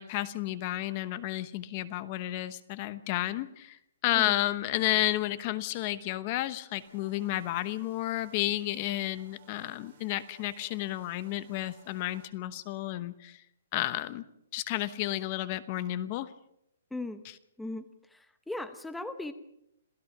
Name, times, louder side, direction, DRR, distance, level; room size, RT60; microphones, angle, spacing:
voice 1, 0.0-3.8 4.0-13.4 13.7-14.2 14.5-16.3, left 15 dB, 35° left, 14 dB, 1.0 m, -31 dB
sound 1, 6.8-12.3, right 6 dB, 40° right, 3.9 m, -60 dB
voice 2, 16.9-17.2 17.6-17.8 18.1-19.3, left 2 dB, 5° left, 10 dB, 0.9 m, -38 dB
27.0 x 16.5 x 6.1 m, 0.78 s
hypercardioid pair, 160°, 0 cm